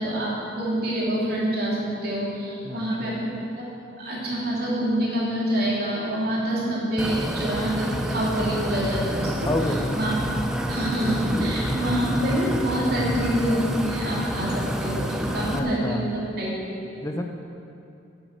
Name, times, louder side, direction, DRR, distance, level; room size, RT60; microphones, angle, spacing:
voice 1, 0.0-3.3 3.6-3.7 4.0-10.2 10.7-17.0, right 1 dB, 60° right, -5 dB, 3.2 m, -26 dB
voice 2, 2.6-3.2 9.4-10.0 11.3-11.4 12.9-13.0 15.5-16.1 17.0-17.2, left 1 dB, 15° left, 3 dB, 0.9 m, -30 dB
sound 1, 7.0-15.6, equal, 5° right, 0.7 m, -28 dB
10.5 x 7.6 x 7.8 m, 2.6 s
head